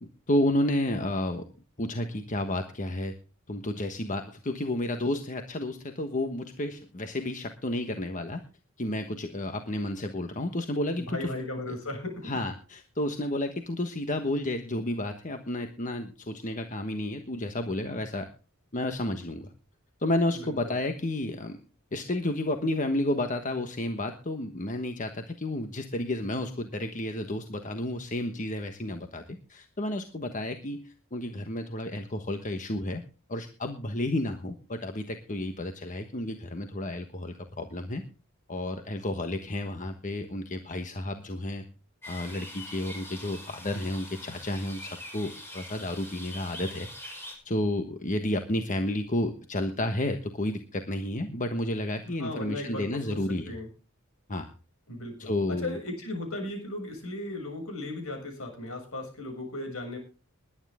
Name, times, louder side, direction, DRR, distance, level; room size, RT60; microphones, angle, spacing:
voice 1, 0.0-1.4 1.8-3.1 3.5-8.4 8.8-11.3 12.2-18.3 18.7-19.5 20.0-21.6 21.9-29.2 29.5-33.0 33.3-38.0 38.5-41.6 42.1-46.9 47.4-53.5 54.3-54.5 55.2-55.8, left 1 dB, 35° left, 6 dB, 1.3 m, -31 dB
voice 2, 11.1-12.3 20.4-20.8 52.2-53.2 53.5-53.7 54.9-60.0, left 2 dB, 65° left, 3 dB, 7.0 m, -36 dB
sound 1, 42.0-47.4, left 1 dB, 10° left, 5.6 m, -43 dB
21.0 x 10.0 x 3.6 m, 0.34 s
head